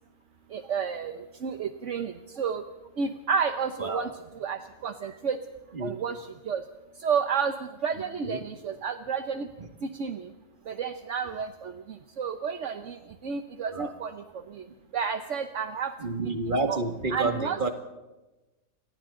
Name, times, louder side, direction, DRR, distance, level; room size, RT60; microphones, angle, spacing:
voice 1, 0.5-1.1 1.4-2.1 2.4-2.6 3.0-4.1 4.4-5.4 5.8-6.2 6.5-6.6 7.0-7.5 7.8-9.5 10.0-10.2 10.7-11.7 12.2-13.0 13.2-14.1 14.9-15.9 16.7-16.8 17.1-17.6, right 6 dB, 65° right, 8 dB, 1.3 m, -30 dB
voice 2, 3.8-4.1 5.0-5.2 5.7-5.9 8.2-8.4 9.6-9.7 13.7-13.9 16.0-17.7, right 2 dB, 40° right, 5 dB, 2.2 m, -30 dB
29.0 x 24.0 x 3.9 m, 1.1 s
omnidirectional pair, 1.4 m